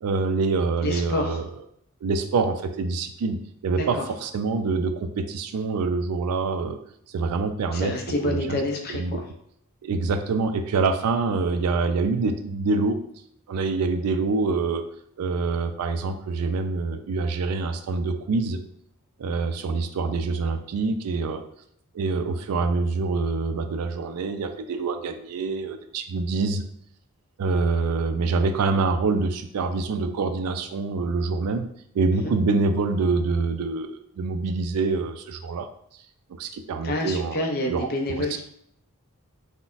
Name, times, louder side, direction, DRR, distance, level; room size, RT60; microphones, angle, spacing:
voice 1, 0.0-1.4 2.0-6.8 7.1-7.9 8.2-8.6 8.9-9.2 9.8-13.0 13.5-14.8 15.2-18.6 19.2-21.4 21.9-26.6 27.4-31.7 31.9-35.7 36.4-37.9 38.2-38.4, right 4 dB, 85° right, 8 dB, 0.3 m, -25 dB
voice 2, 0.8-1.5 3.8-4.1 7.7-9.3 32.2-32.3 36.8-38.4, left 1 dB, 45° left, 3 dB, 0.5 m, -28 dB
3.9 x 2.1 x 2.4 m, 0.69 s
head